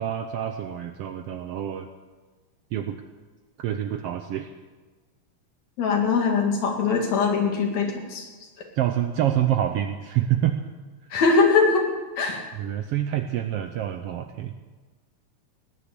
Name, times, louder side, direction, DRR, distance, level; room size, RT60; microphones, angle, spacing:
voice 1, 0.0-1.9 2.7-3.0 3.6-4.5 8.8-10.6 12.5-14.5, right 11 dB, 75° right, 7 dB, 1.4 m, -27 dB
voice 2, 5.8-8.2 11.1-11.9 12.2-12.4, left 4 dB, 70° left, 1 dB, 3.4 m, -21 dB
18.0 x 10.0 x 6.8 m, 1.3 s
omnidirectional pair, 3.3 m